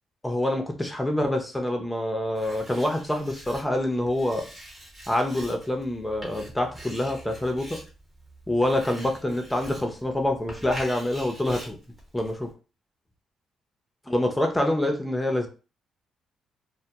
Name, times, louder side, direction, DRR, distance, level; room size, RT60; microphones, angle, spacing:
voice 1, 0.2-4.4 5.1-7.8 8.5-11.8 12.1-12.5 14.1-15.5, left 1 dB, 10° left, 3 dB, 0.6 m, -26 dB
Writing, 2.3-12.5, right 1 dB, 25° right, 0.9 m, -44 dB
2.2 x 2.1 x 2.8 m, 0.34 s
cardioid pair, 90°, 0 cm